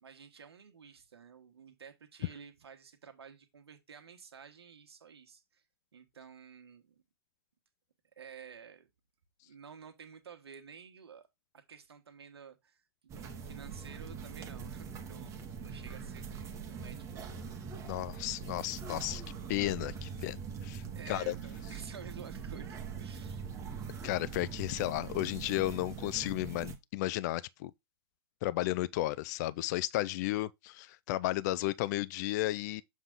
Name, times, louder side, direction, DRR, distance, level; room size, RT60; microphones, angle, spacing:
voice 1, 0.0-5.6 5.9-7.0 8.2-8.9 9.4-11.3 11.5-17.4 20.9-23.5, right 7 dB, 80° right, 1.4 m, -52 dB
sound 1, 13.1-26.8, right 6 dB, 20° right, 1.3 m, -42 dB
voice 2, 17.8-19.2 19.5-20.4 20.6-21.3 24.0-27.7 28.4-32.8, left 16 dB, 45° left, 0.4 m, -33 dB
7.2 x 3.8 x 3.7 m
hypercardioid pair, 130°, 13 cm